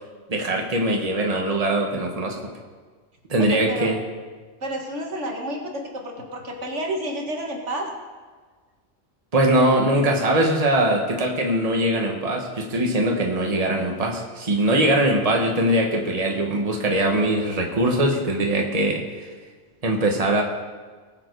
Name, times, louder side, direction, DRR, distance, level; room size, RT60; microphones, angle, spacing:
voice 1, 0.3-2.5 3.3-4.0 9.3-19.0 19.8-20.4, right 1 dB, 30° right, 1 dB, 1.5 m, -21 dB
voice 2, 3.3-3.9 4.6-7.9, right 1 dB, 75° right, 1 dB, 2.0 m, -30 dB
19.5 x 7.7 x 4.7 m, 1.5 s
omnidirectional pair, 1.2 m